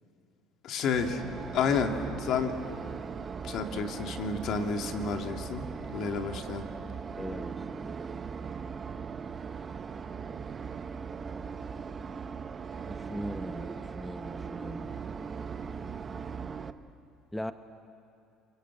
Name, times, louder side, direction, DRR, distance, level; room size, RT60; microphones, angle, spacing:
voice 1, 0.6-1.2 1.5-2.6 3.4-5.6 5.9-6.6, left 5 dB, 60° left, 5 dB, 2.2 m, -30 dB
sound 1, 0.9-16.7, right 6 dB, 35° right, 1.0 m, -39 dB
voice 2, 7.2-8.0 12.9-15.0 17.3-17.5, equal, 5° left, 9 dB, 0.9 m, -40 dB
28.0 x 23.0 x 8.3 m, 2.5 s
supercardioid pair, 95°, 0 cm